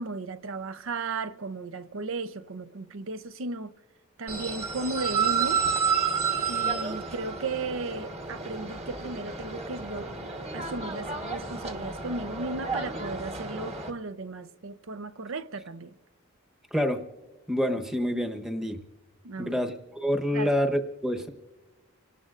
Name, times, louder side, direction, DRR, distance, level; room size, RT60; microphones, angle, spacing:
voice 1, 0.0-3.7 4.2-5.6 6.5-10.1 10.5-15.9 19.2-19.6 20.3-20.5, right 3 dB, 65° right, 0.6 m, -35 dB
sound 1, 4.3-13.9, right 5 dB, 30° right, 1.3 m, -31 dB
voice 2, 16.7-17.0 17.5-18.8 19.4-21.3, equal, ahead, 1.0 m, -27 dB
29.5 x 17.5 x 2.5 m
head